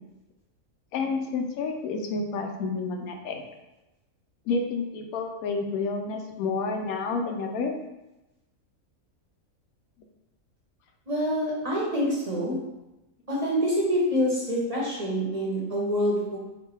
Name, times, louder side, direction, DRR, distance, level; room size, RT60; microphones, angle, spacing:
voice 1, 0.9-3.4 4.5-7.7, left 4 dB, 90° left, 3 dB, 1.1 m, -29 dB
voice 2, 11.1-12.6 13.3-16.4, equal, 35° right, -6 dB, 0.7 m, -26 dB
5.3 x 2.2 x 3.2 m, 0.97 s
omnidirectional pair, 1.5 m